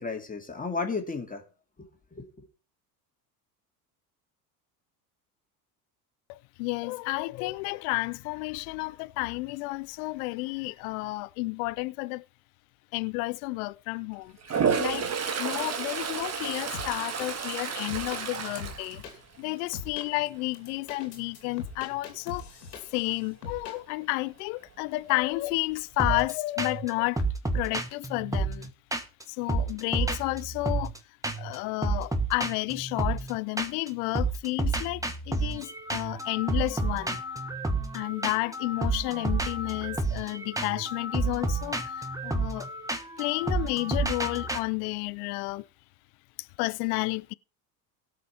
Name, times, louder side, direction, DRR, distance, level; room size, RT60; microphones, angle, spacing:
voice 1, 0.0-1.4 1.8-2.5, left 4 dB, 15° left, 2.3 m, -34 dB
voice 2, 6.3-12.2 12.9-15.1 15.4-19.0 19.4-22.5 22.9-27.2 27.5-28.7 29.3-30.9 31.4-35.0 35.3-37.2 37.9-42.7 43.2-45.6 46.4-47.3, left 22 dB, 70° left, 0.5 m, -31 dB
Toilet flush, 14.4-19.6 20.0-20.4 24.8-24.9 25.2-26.0, right 6 dB, 35° right, 1.5 m, -31 dB
sound 1, 16.7-17.3 17.7-19.1 19.7-20.1 20.5-23.1 23.4-23.8, left 5 dB, 90° left, 2.5 m, -41 dB
sound 2, 26.0-26.3 26.6-26.9 27.2-29.2 29.5-31.0 31.2-31.6 31.8-33.9 34.1-44.6, right 2 dB, 5° right, 1.4 m, -30 dB
17.5 x 5.9 x 4.3 m
hypercardioid pair, 75°, 47 cm